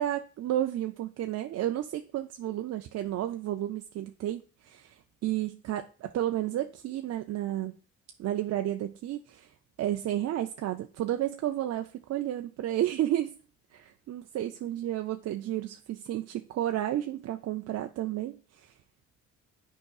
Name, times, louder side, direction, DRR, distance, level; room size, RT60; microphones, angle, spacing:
voice 1, 0.0-7.8 8.2-9.5 9.8-13.4 13.7-18.7, right 12 dB, 55° right, 0.4 m, -32 dB
8.5 x 5.0 x 2.4 m
cardioid pair, 90°, 30 cm